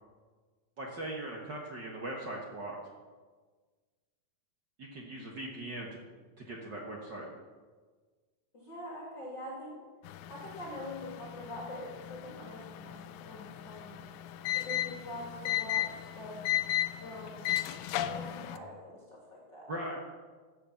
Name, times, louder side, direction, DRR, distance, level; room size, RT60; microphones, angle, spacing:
voice 1, 0.8-2.8 4.8-6.0 6.4-7.2 19.7-20.0, right 1 dB, 55° right, -1 dB, 1.2 m, -40 dB
voice 2, 8.5-9.8 10.3-13.9 14.5-16.4 16.9-17.5 18.1-19.7, left 1 dB, 35° left, -2 dB, 2.4 m, -44 dB
sound 1, 10.0-18.6, left 13 dB, 80° left, 2.2 m, -36 dB
14.0 x 6.7 x 7.1 m, 1.4 s
omnidirectional pair, 3.9 m